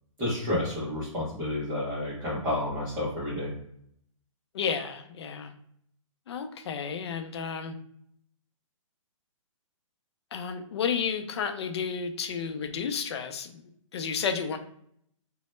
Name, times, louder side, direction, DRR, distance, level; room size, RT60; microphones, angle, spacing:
voice 1, 0.2-3.5, left 1 dB, 15° right, -9 dB, 0.5 m, -30 dB
voice 2, 4.5-5.5 6.3-7.8 10.3-13.6 13.9-14.6, left 6 dB, 50° left, 7 dB, 0.4 m, -32 dB
2.0 x 2.0 x 3.0 m, 0.70 s
hypercardioid pair, 165°, 17 cm